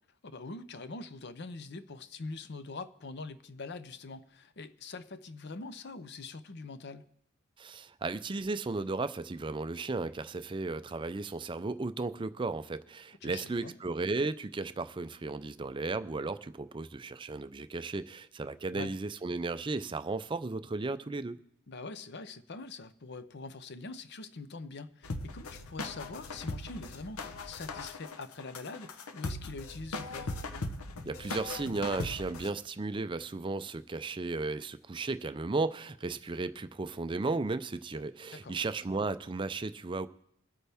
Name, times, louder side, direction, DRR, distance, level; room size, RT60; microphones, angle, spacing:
voice 1, 0.2-7.1 13.2-13.7 18.7-18.9 21.7-30.4 38.3-38.6, left 3 dB, 50° left, 0.6 m, -44 dB
voice 2, 7.6-21.4 31.1-40.1, right 3 dB, 20° right, 0.4 m, -35 dB
sound 1, 25.0-32.5, left 2 dB, 85° left, 0.9 m, -39 dB
22.5 x 8.5 x 3.5 m
head